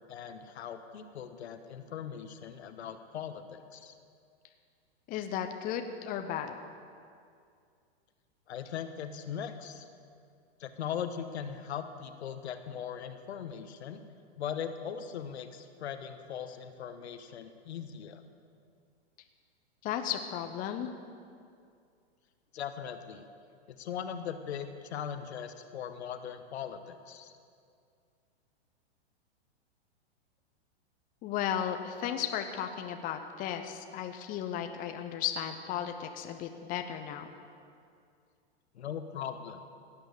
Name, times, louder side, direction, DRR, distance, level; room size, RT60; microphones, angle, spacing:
voice 1, 0.1-3.9 8.5-9.8 10.6-14.0 14.4-18.2 22.5-23.3 23.7-27.3 38.7-39.6, left 8 dB, 75° left, 9 dB, 1.2 m, -39 dB
voice 2, 5.1-6.6 19.8-20.9 31.2-37.3, left 9 dB, 25° left, 6 dB, 0.8 m, -35 dB
16.5 x 9.0 x 6.8 m, 2.3 s
hypercardioid pair, 135°, 33 cm